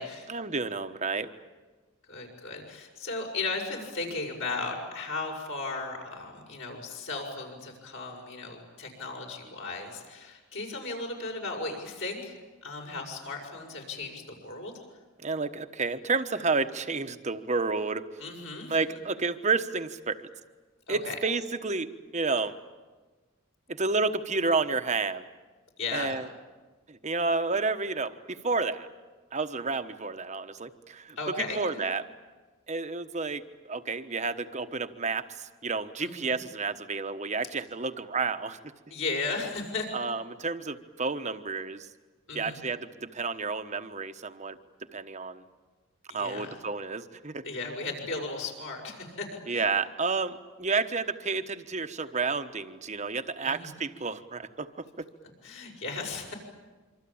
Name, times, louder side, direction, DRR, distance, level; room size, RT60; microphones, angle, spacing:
voice 1, 0.3-1.3 15.2-18.2 18.7-20.3 20.9-22.6 23.7-25.2 25.9-26.3 26.9-28.9 29.3-32.1 32.7-38.6 39.9-41.9 42.3-44.6 44.9-45.4 46.1-47.4 49.5-55.1, right 4 dB, 35° right, 9 dB, 1.1 m, -30 dB
voice 2, 2.1-14.7 18.2-18.8 20.9-21.2 25.8-26.2 31.2-31.6 36.0-36.4 38.9-39.9 42.3-42.6 46.1-46.5 47.4-49.6 53.4-53.7 55.4-56.3, left 3 dB, 60° left, 1 dB, 6.7 m, -36 dB
26.0 x 25.0 x 8.7 m, 1.3 s
head